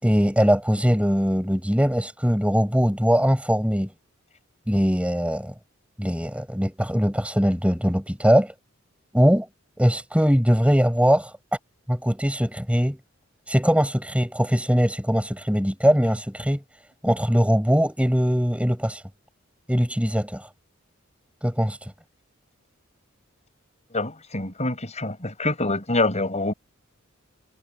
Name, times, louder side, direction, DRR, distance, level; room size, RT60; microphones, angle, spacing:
voice 1, 0.0-3.9 4.7-5.5 6.0-8.5 9.1-9.5 9.8-11.3 11.9-13.0 13.5-16.6 17.0-19.0 19.7-20.5 21.4-21.9, equal, 5° right, 7.8 m, -21 dB
voice 2, 23.9-26.5, left 2 dB, 35° left, 7.2 m, -25 dB
head